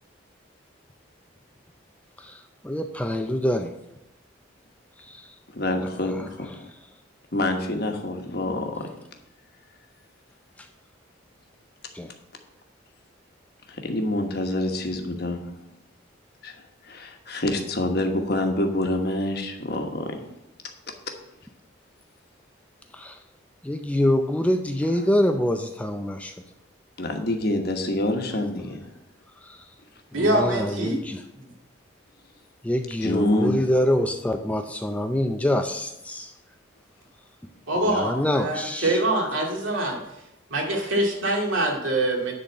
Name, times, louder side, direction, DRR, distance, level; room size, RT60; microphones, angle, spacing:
voice 1, 2.2-3.7 5.0-5.3 5.8-6.3 10.6-10.7 11.9-12.1 22.9-23.2 23.6-26.4 29.4-29.7 30.1-31.2 32.6-36.3 37.8-39.0, left 1 dB, 5° left, 6 dB, 0.4 m, -26 dB
voice 2, 5.5-6.7 7.3-8.9 13.7-15.4 16.4-20.3 27.0-28.8 33.0-33.5, left 1 dB, 50° left, 4 dB, 1.2 m, -26 dB
voice 3, 30.1-31.0 37.7-40.0 40.5-42.3, right 1 dB, 80° right, 0 dB, 2.2 m, -24 dB
10.5 x 4.0 x 7.3 m, 0.88 s
head